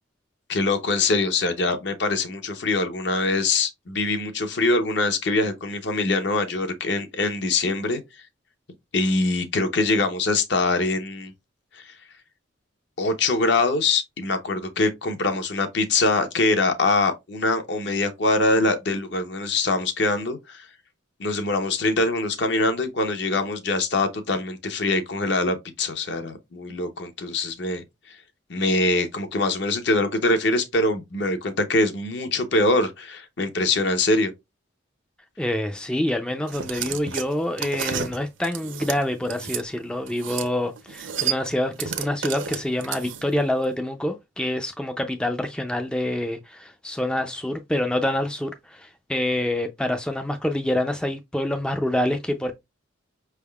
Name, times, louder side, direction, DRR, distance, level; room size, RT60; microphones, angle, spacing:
voice 1, 0.5-8.0 8.9-11.3 11.7-11.9 13.0-20.7 21.2-27.8 28.5-34.3, left 2 dB, 60° left, 0.7 m, -23 dB
voice 2, 35.4-52.6, left 1 dB, 5° left, 0.3 m, -26 dB
sound 1, 36.5-39.6 40.1-40.5 40.8-43.4, right 8 dB, 70° right, 0.6 m, -31 dB
5.3 x 3.5 x 2.3 m
head